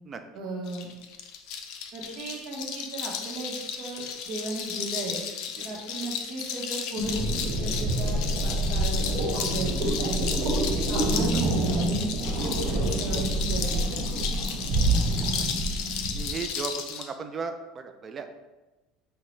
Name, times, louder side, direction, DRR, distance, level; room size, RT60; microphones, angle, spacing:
voice 1, 0.3-0.9 1.9-5.2 5.6-11.8 12.4-14.2, right 2 dB, 60° right, -2 dB, 0.9 m, -36 dB
Textura mano, 0.7-17.1, left 7 dB, 65° left, 0.4 m, -34 dB
sound 1, 6.9-16.4, right 2 dB, 80° right, 1.2 m, -27 dB
voice 2, 16.1-18.3, right 5 dB, 30° right, 7 dB, 0.3 m, -36 dB
5.2 x 2.2 x 3.1 m, 1.1 s
cardioid pair, 130°, 0 cm